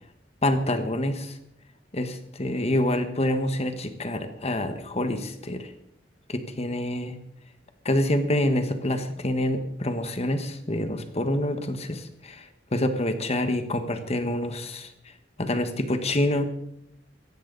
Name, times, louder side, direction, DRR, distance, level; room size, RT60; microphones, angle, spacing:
voice 1, 0.4-1.4 1.9-5.7 6.3-7.2 7.8-14.9 15.4-16.5, left 1 dB, 35° left, 8 dB, 1.4 m, -27 dB
17.0 x 14.5 x 4.0 m, 0.76 s
head